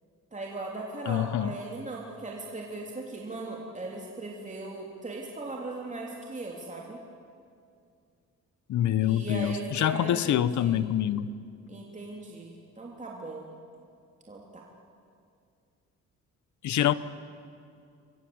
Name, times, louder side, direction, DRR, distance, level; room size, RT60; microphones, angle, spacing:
voice 1, 0.3-7.0 9.0-10.8 11.7-13.5 14.3-14.6, right 2 dB, 25° right, -2 dB, 3.3 m, -38 dB
voice 2, 1.1-1.5 8.7-11.3 16.6-16.9, left 11 dB, 70° left, 16 dB, 1.1 m, -26 dB
29.5 x 23.0 x 8.0 m, 2.4 s
cardioid pair, 90°, 30 cm